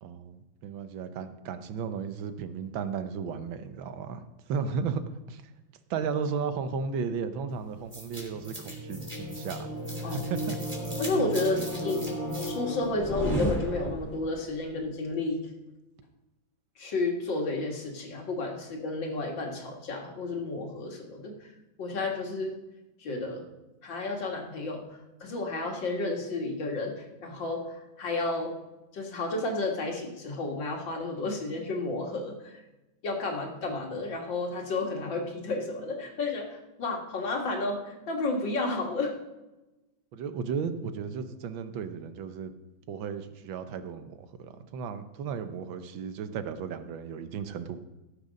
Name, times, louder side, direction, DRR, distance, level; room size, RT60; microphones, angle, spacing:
voice 1, 0.0-5.4 5.9-9.7 10.0-10.6 40.1-42.5 42.9-47.8, right 6 dB, 80° right, 10 dB, 1.6 m, -34 dB
sound 1, 7.9-14.3, equal, 20° right, 3.2 m, -33 dB
voice 2, 11.0-12.0 12.4-15.5 16.8-21.3 21.8-22.5 23.0-23.4 23.8-24.8 25.2-28.5 28.9-32.6 33.0-39.1, left 3 dB, 70° left, 1 dB, 2.5 m, -31 dB
17.5 x 6.8 x 5.1 m, 1.0 s
omnidirectional pair, 2.1 m